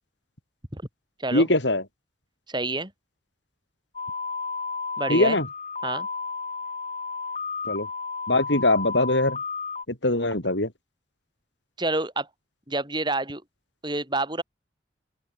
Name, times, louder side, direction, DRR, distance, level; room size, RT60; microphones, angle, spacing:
voice 1, 1.3-1.8 5.1-5.5 7.7-7.9 8.3-9.4 10.0-10.7, left 2 dB, 80° left, 6.1 m, -22 dB
voice 2, 2.5-2.9 5.0-5.4 5.8-6.1 11.8-12.3 12.7-13.4 13.8-14.4, right 2 dB, 25° right, 7.9 m, -28 dB
sound 1, 3.9-9.8, left 4 dB, 35° left, 6.7 m, -32 dB
open air
head